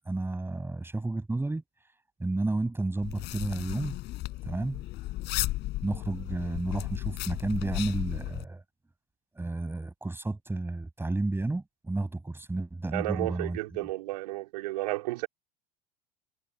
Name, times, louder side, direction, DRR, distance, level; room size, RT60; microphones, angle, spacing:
voice 1, 0.0-1.6 2.2-4.0 4.4-4.8 5.8-8.6 9.3-13.6, right 2 dB, 10° right, 6.9 m, -31 dB
sound 1, 3.0-8.5, left 17 dB, 55° left, 7.5 m, -35 dB
voice 2, 12.9-15.3, right 19 dB, 75° right, 4.9 m, -32 dB
hypercardioid pair, 80°, 21 cm